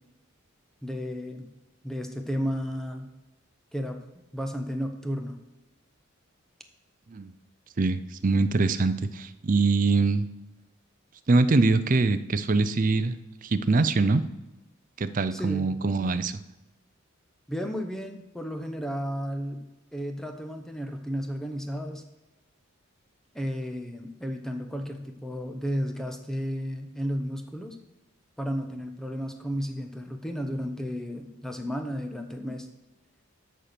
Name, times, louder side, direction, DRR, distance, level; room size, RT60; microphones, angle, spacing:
voice 1, 0.8-1.5 1.8-3.1 3.7-4.0 4.3-5.4 15.3-15.7 17.5-19.6 19.9-22.0 23.3-27.8 28.4-32.7, equal, ahead, 5 dB, 0.8 m, -33 dB
voice 2, 7.8-10.3 11.3-13.2 13.4-14.2 15.0-16.4, right 3 dB, 40° right, 12 dB, 0.5 m, -23 dB
13.0 x 4.4 x 6.7 m, 1.0 s
head